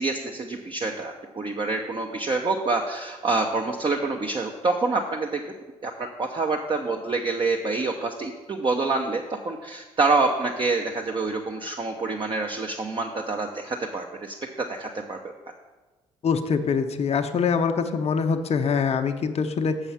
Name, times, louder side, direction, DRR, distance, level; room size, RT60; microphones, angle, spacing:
voice 1, 0.0-5.4 5.8-5.9 6.2-15.3, right 3 dB, 30° right, 2 dB, 0.8 m, -27 dB
voice 2, 16.2-19.8, left 5 dB, 40° left, 7 dB, 0.7 m, -24 dB
7.0 x 5.6 x 7.1 m, 1.2 s
figure-of-eight pair, 45°, 17 cm